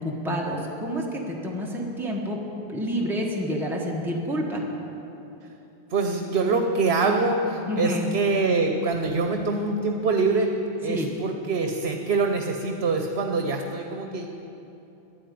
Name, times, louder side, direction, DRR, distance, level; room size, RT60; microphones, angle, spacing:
voice 1, 0.0-2.4 2.7-4.6 7.7-8.1 10.9-11.1, equal, ahead, -2 dB, 1.3 m, -28 dB
voice 2, 5.9-10.5 10.8-14.3, right 3 dB, 70° right, 4 dB, 1.1 m, -24 dB
11.0 x 8.9 x 9.3 m, 2.9 s
omnidirectional pair, 1.0 m